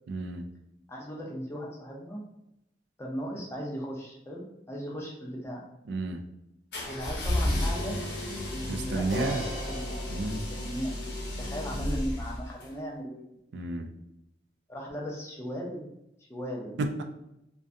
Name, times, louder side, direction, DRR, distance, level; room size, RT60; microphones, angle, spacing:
voice 1, 0.1-0.4 5.9-6.2 8.7-9.5 10.1-10.4 13.5-13.9 16.8-17.0, right 2 dB, 80° right, 6 dB, 0.3 m, -31 dB
voice 2, 0.9-2.2 3.0-5.7 6.8-8.1 8.5-10.0 10.3-11.0 11.4-13.2 14.7-15.9 16.2-16.7, equal, 15° left, -2 dB, 0.4 m, -37 dB
sound 1, 6.7-12.7, left 1 dB, 75° left, 0.7 m, -32 dB
sound 2, 7.7-11.1, equal, 55° right, 1.0 m, -40 dB
2.5 x 2.2 x 2.5 m, 0.84 s
head